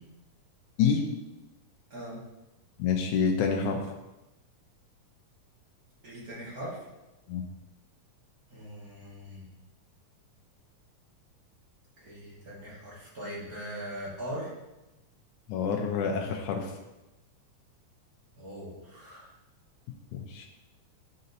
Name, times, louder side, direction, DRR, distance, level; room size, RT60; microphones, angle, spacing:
voice 1, 2.8-3.9 7.3-7.5 15.5-16.7 20.1-20.5, left 6 dB, 80° left, 2 dB, 1.8 m, -27 dB
voice 2, 6.0-6.8 8.5-9.4 12.0-14.5 18.3-19.3, equal, 40° right, -7 dB, 1.4 m, -40 dB
10.5 x 4.1 x 2.7 m, 1.0 s
omnidirectional pair, 3.9 m